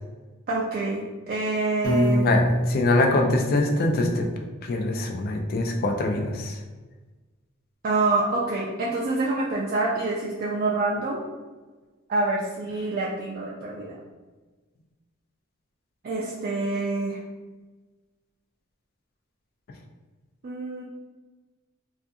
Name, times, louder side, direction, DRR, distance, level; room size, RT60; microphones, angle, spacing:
voice 1, 0.5-2.3 7.8-11.2 12.1-14.0 16.0-17.2 20.4-20.8, right 2 dB, 45° right, -5 dB, 0.3 m, -26 dB
Piano, 1.8-4.0, equal, 75° left, 0.9 m, -25 dB
voice 2, 2.1-4.3 4.6-6.6, left 2 dB, 45° left, 3 dB, 0.3 m, -23 dB
2.4 x 2.3 x 2.6 m, 1.3 s
head